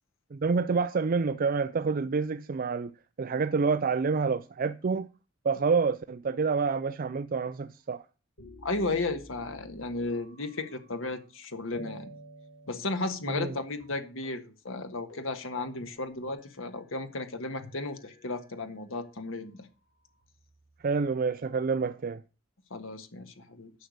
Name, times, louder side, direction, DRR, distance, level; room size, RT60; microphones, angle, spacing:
voice 1, 0.3-2.9 3.2-5.1 5.4-8.0 13.3-13.5 20.8-22.2, right 5 dB, 45° right, 0.4 m, -28 dB
sound 1, 8.4-11.3 11.7-13.5 13.8-13.9 14.2-14.4 14.7-14.8 15.1-16.8 17.6-19.2 19.9-20.8, right 1 dB, 70° left, 7.0 m, -52 dB
voice 2, 8.6-12.1 12.7-19.7 22.7-23.7, left 2 dB, 85° left, 1.6 m, -34 dB
11.0 x 6.7 x 6.5 m
head